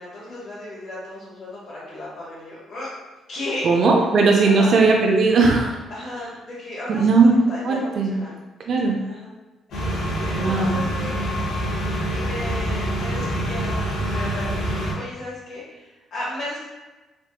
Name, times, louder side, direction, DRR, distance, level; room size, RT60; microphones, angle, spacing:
voice 1, 0.0-2.9 3.3-3.7 4.4-4.7 5.9-7.1 7.5-8.3 8.9-9.3 9.7-11.8 12.1-13.8 14.1-16.6, left 1 dB, 55° left, -9 dB, 1.2 m, -35 dB
voice 2, 3.6-5.8 6.9-7.4 7.6-8.1 8.7-9.0 10.4-10.9, right 4 dB, 60° right, 0 dB, 0.4 m, -18 dB
sound 1, 9.7-14.9, right 1 dB, 80° left, 1.2 m, -26 dB
3.4 x 2.7 x 2.2 m, 1.1 s
cardioid pair, 90°, 0 cm